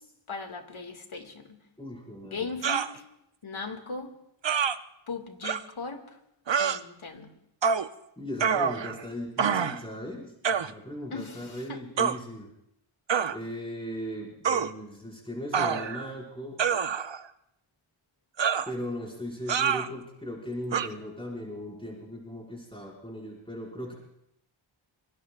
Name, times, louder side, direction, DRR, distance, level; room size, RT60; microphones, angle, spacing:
voice 1, 0.3-1.6 2.2-3.0 3.4-4.1 5.1-6.2 6.6-7.3 11.1-11.8, left 4 dB, 75° left, 4 dB, 2.1 m, -38 dB
voice 2, 1.8-2.5 8.2-12.5 13.3-16.6 18.7-23.9, equal, 10° left, -4 dB, 5.3 m, -38 dB
sound 1, 2.6-2.9 4.4-4.8 5.4-5.6 6.5-6.8 7.6-7.9 8.4-9.0 9.4-9.8 10.4-10.7 12.0-12.2 13.1-13.4 14.4-14.7 15.5-16.1 16.6-17.2 18.4-18.7 19.5-19.9 20.7-20.9, right 7 dB, 60° right, 0.7 m, -26 dB
26.0 x 22.5 x 2.4 m, 0.80 s
wide cardioid pair, 55°, 49 cm